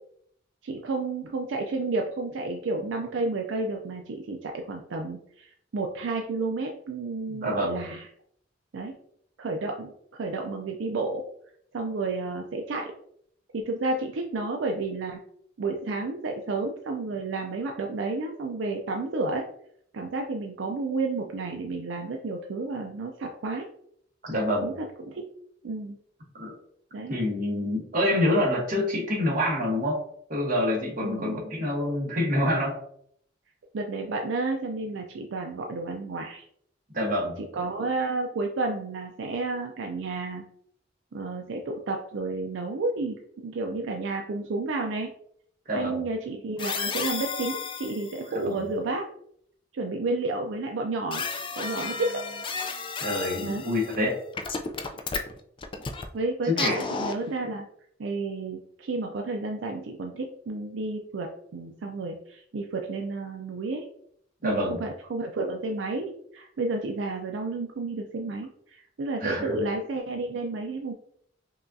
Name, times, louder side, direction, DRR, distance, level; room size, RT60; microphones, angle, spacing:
voice 1, 0.6-8.1 8.7-8.9 9.4-11.2 11.7-12.9 13.5-15.2 15.6-19.4 19.9-23.7 24.6-24.7 25.0-25.3 25.6-26.0 26.9-27.1 31.0-31.5 33.7-36.4 37.5-40.4 41.1-45.1 45.7-49.1 49.7-51.3 51.6-52.2 53.4-53.7 55.1-55.2 56.1-57.7 58.0-63.9 64.4-70.9, right 3 dB, 75° right, 3 dB, 0.4 m, -31 dB
voice 2, 7.3-7.8 24.2-24.7 26.3-26.5 27.1-30.0 30.3-32.8 36.9-37.4 45.7-46.0 48.3-48.6 53.0-54.2 56.4-56.8 64.4-64.8 69.2-69.6, left 1 dB, 45° right, -2 dB, 1.2 m, -26 dB
sound 1, 46.6-48.3 51.1-54.0 54.3-56.1 56.5-57.4, left 5 dB, 25° left, 0.3 m, -33 dB
5.4 x 2.3 x 2.6 m, 0.67 s
head